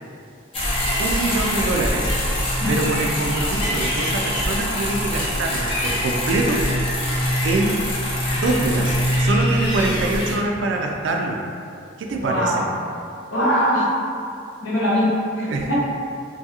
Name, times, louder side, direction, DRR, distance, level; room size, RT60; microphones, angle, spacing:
sound 1, 0.5-10.3, equal, 30° left, 0.5 m, -23 dB
voice 1, 1.0-2.1 2.7-6.7 7.4-7.8 8.3-11.4 12.0-12.7 15.5-15.7, right 2 dB, 70° right, 1 dB, 0.3 m, -24 dB
voice 2, 12.2-12.7 13.3-13.9 14.6-15.7, equal, 70° left, -9 dB, 0.9 m, -22 dB
2.7 x 2.3 x 2.8 m, 2.5 s
head